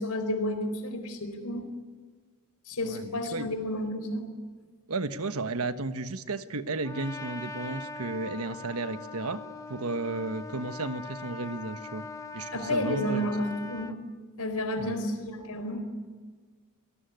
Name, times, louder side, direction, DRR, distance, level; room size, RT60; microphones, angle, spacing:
voice 1, 0.0-1.7 2.7-4.2 12.5-13.9 14.4-15.8, left 1 dB, 90° left, 8 dB, 4.3 m, -31 dB
voice 2, 2.8-3.5 4.9-9.4 9.7-12.1 12.3-13.3 14.8-15.0, right 3 dB, 75° right, 10 dB, 1.3 m, -33 dB
Trumpet, 6.8-14.0, left 2 dB, 15° left, 1.1 m, -41 dB
27.5 x 19.0 x 9.4 m, 1.5 s
head